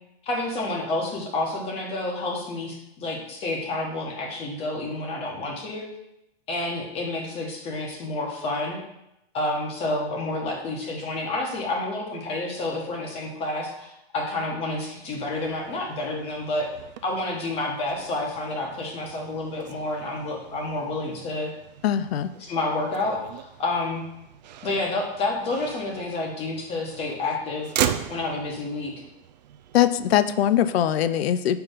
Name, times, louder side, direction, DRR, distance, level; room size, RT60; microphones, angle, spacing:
voice 1, 0.2-5.9 6.5-8.8 9.3-16.7 17.0-21.5 22.4-24.0 24.6-27.7 28.1-28.9, left 2 dB, 20° left, 0 dB, 1.1 m, -29 dB
Motor vehicle (road), 14.9-30.8, right 10 dB, 45° right, 0.4 m, -38 dB
voice 2, 21.8-22.3 29.7-31.6, left 11 dB, 75° left, 13 dB, 0.5 m, -21 dB
5.6 x 4.6 x 5.0 m, 0.86 s
hypercardioid pair, 160°, 31 cm